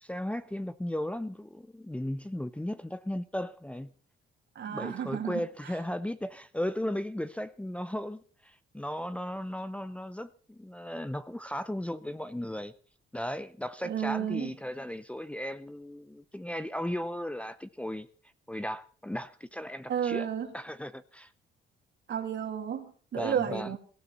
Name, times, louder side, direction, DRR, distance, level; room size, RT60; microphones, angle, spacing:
voice 1, 0.0-3.9 4.7-12.7 13.1-18.1 18.5-20.3 20.5-21.3 23.2-23.7, left 1 dB, 5° left, 0.7 m, -36 dB
voice 2, 4.5-5.7 13.8-14.5 19.9-20.5 22.1-23.8, right 8 dB, 65° right, 2.9 m, -32 dB
18.0 x 13.5 x 4.1 m
cardioid pair, 90°, 20 cm